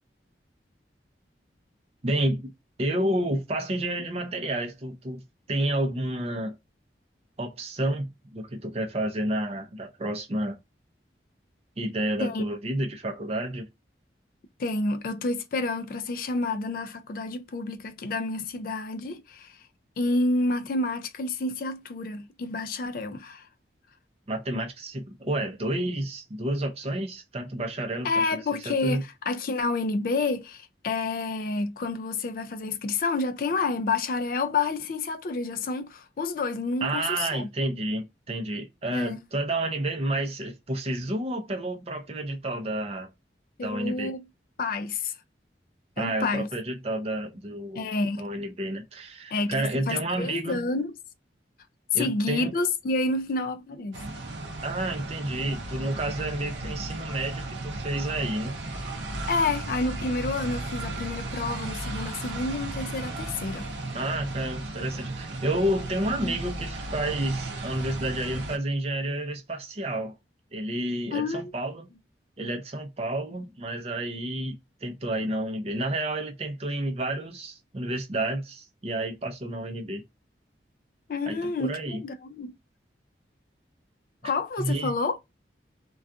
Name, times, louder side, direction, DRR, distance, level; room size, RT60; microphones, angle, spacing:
voice 1, 2.0-2.5 2.8-5.2 5.5-6.5 7.4-10.6 11.8-13.7 24.3-28.1 28.6-29.0 36.8-43.1 43.6-44.1 46.0-47.9 48.2-50.7 51.9-52.5 54.6-58.6 63.9-70.2 70.5-71.9 72.4-74.5 74.8-80.0 81.3-82.0 84.6-84.9, right 1 dB, 35° right, 0.5 m, -30 dB
voice 2, 14.6-19.6 20.0-23.5 28.0-37.5 38.9-39.2 43.6-44.3 44.6-45.1 46.0-46.5 47.7-48.2 49.3-50.9 51.9-54.0 56.6-56.7 59.3-63.7 66.2-66.4 71.1-71.5 81.1-82.6 84.2-85.2, left 3 dB, 50° left, 0.3 m, -29 dB
sound 1, 53.9-68.6, right 2 dB, 75° right, 0.5 m, -35 dB
2.3 x 2.3 x 2.5 m
head